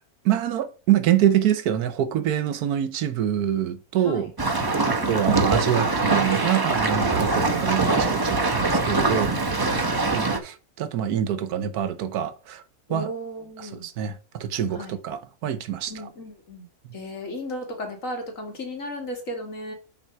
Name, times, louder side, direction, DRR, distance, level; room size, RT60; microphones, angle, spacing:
voice 1, 0.2-4.3 4.9-9.3 10.1-12.6 12.9-13.1 13.6-16.1, right 10 dB, 80° right, 1.3 m, -25 dB
sound 1, 4.4-10.4, right 3 dB, 20° right, 0.8 m, -23 dB
voice 2, 4.7-5.2 9.6-9.9 12.9-13.9 14.8-15.0 15.9-16.7 16.9-19.7, left 1 dB, 60° left, 2.3 m, -35 dB
7.2 x 4.1 x 5.6 m
omnidirectional pair, 1.6 m